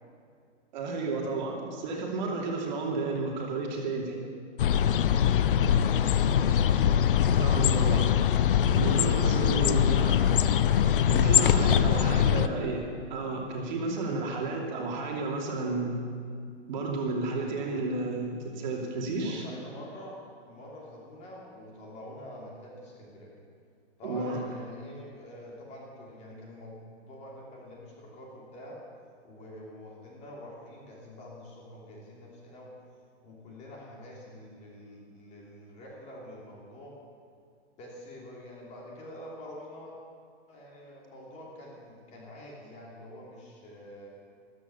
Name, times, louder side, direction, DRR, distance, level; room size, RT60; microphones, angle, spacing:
voice 1, 0.7-4.2 7.3-8.1 8.7-10.2 11.1-16.0 16.7-19.4 24.0-24.4, right 3 dB, 40° right, -1 dB, 2.8 m, -32 dB
sound 1, 4.6-12.5, left 9 dB, 50° left, 0.6 m, -23 dB
voice 2, 5.7-6.9 10.0-10.5 11.8-12.6 17.4-17.8 19.1-20.2 20.5-23.4 24.0-26.7 27.1-28.8 29.2-32.7 33.2-36.9 37.8-40.0 40.5-44.1, left 1 dB, 20° left, -3 dB, 3.0 m, -46 dB
14.5 x 13.5 x 6.9 m, 2.3 s
hypercardioid pair, 165°, 36 cm